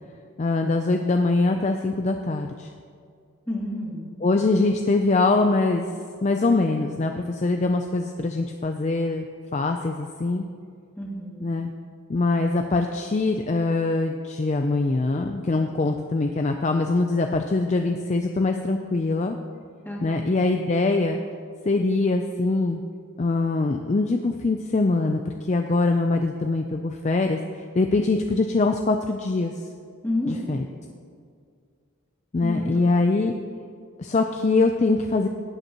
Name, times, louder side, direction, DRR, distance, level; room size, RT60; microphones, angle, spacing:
voice 1, 0.4-2.7 4.2-5.9 6.2-9.3 9.5-10.4 11.4-11.7 12.1-19.4 20.0-21.2 21.7-22.8 23.2-25.2 25.5-29.6 30.3-30.6 32.3-33.3 34.0-35.3, left 3 dB, 35° left, 5 dB, 0.4 m, -23 dB
voice 2, 3.5-4.1 11.0-11.5 19.8-20.4 30.0-30.6 32.4-32.7, left 1 dB, 10° left, -5 dB, 2.1 m, -30 dB
17.5 x 8.1 x 2.9 m, 2.2 s
head